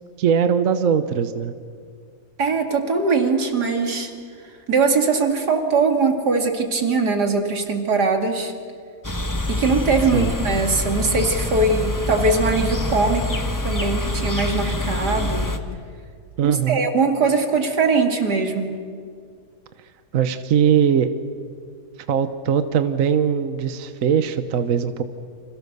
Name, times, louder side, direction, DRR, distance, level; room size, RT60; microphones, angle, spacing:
voice 1, 0.2-1.5 10.1-10.3 16.4-16.9 20.1-21.1 22.1-25.0, right 7 dB, 60° right, 10 dB, 1.3 m, -20 dB
voice 2, 2.4-4.1 4.7-8.5 9.5-15.6 16.4-18.8, right 4 dB, 90° right, 4 dB, 3.0 m, -21 dB
sound 1, 9.0-15.6, left 2 dB, 15° left, 1.3 m, -25 dB
30.0 x 26.5 x 6.8 m, 2.2 s
omnidirectional pair, 1.7 m